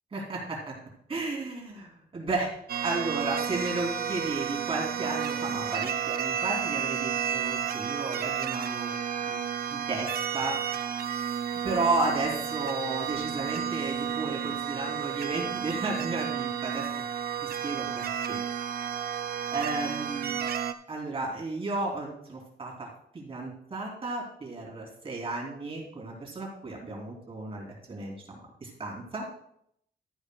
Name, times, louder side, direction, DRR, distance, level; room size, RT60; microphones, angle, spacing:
voice 1, 0.1-0.7 1.1-2.5 2.8-8.9 9.3-9.4 9.7-10.6 11.6-16.9 17.4-18.4 19.5-20.3 20.9-22.9 23.1-29.3, right 3 dB, 35° right, -2 dB, 3.0 m, -33 dB
sound 1, 2.7-20.7, right 8 dB, 65° right, 0.6 m, -32 dB
13.5 x 10.0 x 2.3 m, 0.71 s
wide cardioid pair, 155°, 16 cm